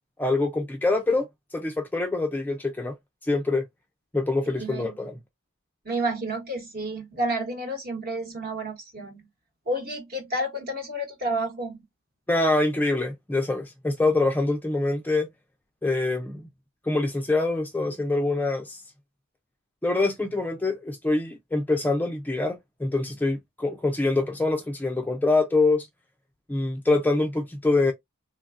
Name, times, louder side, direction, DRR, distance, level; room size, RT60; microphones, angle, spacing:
voice 1, 0.2-2.9 3.2-3.6 4.1-5.2 12.3-15.3 15.8-16.4 16.9-18.8 19.8-25.9 26.5-27.9, left 2 dB, 10° left, 0.3 m, -25 dB
voice 2, 4.6-4.9 5.8-9.3 9.7-11.8, right 1 dB, 45° right, 1.1 m, -30 dB
3.2 x 2.2 x 2.4 m
head